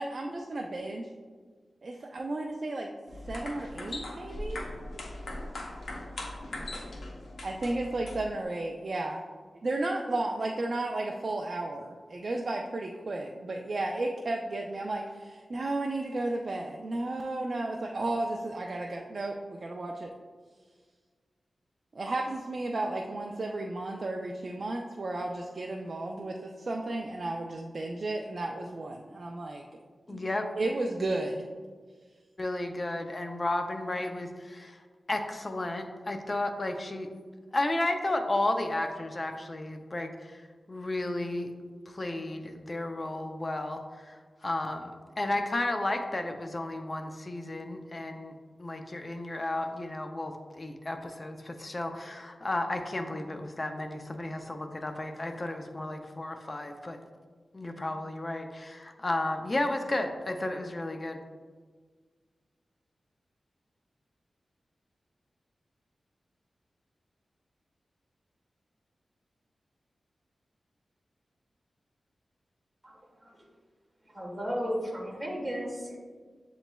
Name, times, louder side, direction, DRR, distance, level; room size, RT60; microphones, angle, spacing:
voice 1, 0.0-1.1 1.8-2.9 3.2-5.0 7.4-9.2 9.6-20.1 21.9-29.6 30.1-30.2 30.6-31.4, right 2 dB, 45° right, 1 dB, 0.3 m, -33 dB
sound 1, 3.1-8.4, left 1 dB, 85° left, 0.6 m, -40 dB
voice 2, 30.1-30.5 32.4-34.8 35.1-37.1 37.5-41.5 41.9-57.0 57.5-61.2, left 2 dB, 30° left, 5 dB, 0.4 m, -33 dB
voice 3, 74.1-76.0, equal, 5° right, -3 dB, 1.5 m, -34 dB
7.7 x 3.0 x 2.2 m, 1.5 s
wide cardioid pair, 135°, 0 cm